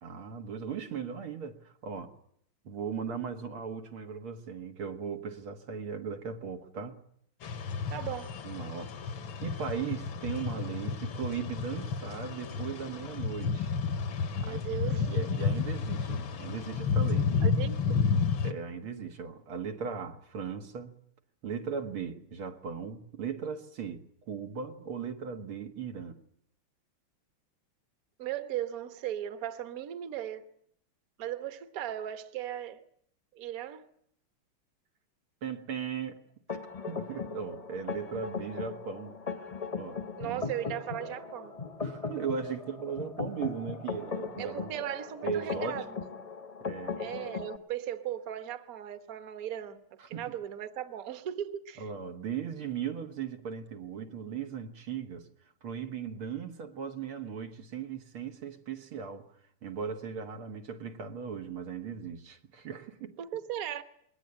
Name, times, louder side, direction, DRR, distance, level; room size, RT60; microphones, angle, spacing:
voice 1, 0.0-2.1 2.6-7.0 8.4-8.9 9.4-13.7 14.4-14.8 15.1-17.3 18.4-20.9 21.4-26.2 35.4-36.2 36.5-36.6 36.9-39.2 39.7-40.5 41.8-44.7 45.2-45.9 46.6-47.0 50.0-50.3 51.8-55.3 55.6-59.2 59.6-63.1, right 6 dB, 85° right, 2.5 m, -38 dB
sound 1, 7.4-18.5, left 5 dB, 75° left, 1.9 m, -31 dB
voice 2, 7.9-8.4 14.4-15.1 17.4-17.7 28.2-30.4 31.2-32.8 33.3-33.9 40.2-41.5 44.4-46.0 47.0-49.8 50.1-51.9 63.2-63.8, right 11 dB, 50° right, 1.4 m, -37 dB
sound 2, 36.5-47.6, left 5 dB, 25° left, 0.8 m, -38 dB
21.5 x 18.0 x 9.9 m
omnidirectional pair, 2.3 m